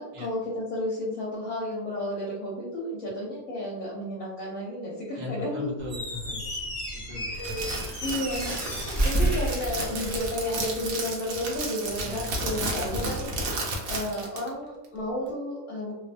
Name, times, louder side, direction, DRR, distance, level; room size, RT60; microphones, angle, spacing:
voice 1, 0.0-5.7 7.3-13.3 13.6-15.9, left 1 dB, 70° left, -4 dB, 1.0 m, -32 dB
voice 2, 5.2-6.5 6.9-8.2 8.8-8.9 12.0-12.4, left 2 dB, 50° right, -4 dB, 0.5 m, -39 dB
Squeak, 5.8-10.5, right 1 dB, ahead, 0.9 m, -30 dB
Crackle, 7.3-14.5, right 2 dB, 70° right, 0.9 m, -33 dB
2.6 x 2.0 x 2.4 m, 1.0 s
omnidirectional pair, 1.6 m